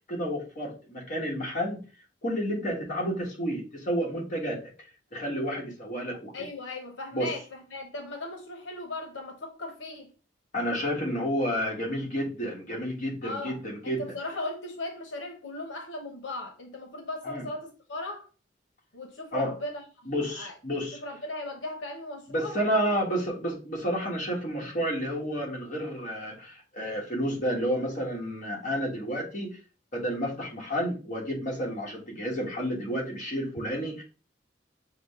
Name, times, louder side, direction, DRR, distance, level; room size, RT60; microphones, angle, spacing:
voice 1, 0.1-1.8 2.2-4.6 5.1-6.3 7.1-7.3 10.5-14.0 17.2-17.4 19.3-19.5 20.1-21.0 22.3-29.6 29.9-34.0, equal, 45° left, 1.4 m, -30 dB
voice 2, 6.3-10.1 13.2-13.6 13.8-18.3 18.9-20.5 20.9-22.6 22.9-23.0, left 2 dB, 90° left, 0.8 m, -37 dB
6.3 x 2.1 x 3.5 m
head